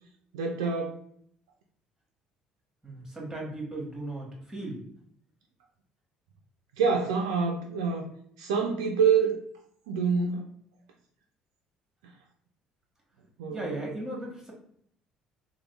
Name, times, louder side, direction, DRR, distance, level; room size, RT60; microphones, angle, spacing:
voice 1, 0.3-1.0 6.8-8.1 8.4-9.4 9.9-10.4 13.4-13.6, right 6 dB, 80° right, 1 dB, 0.3 m, -26 dB
voice 2, 2.8-4.8 13.5-14.5, right 1 dB, 15° right, -2 dB, 1.5 m, -36 dB
3.1 x 2.1 x 3.1 m, 0.67 s
hypercardioid pair, 60°, 3 cm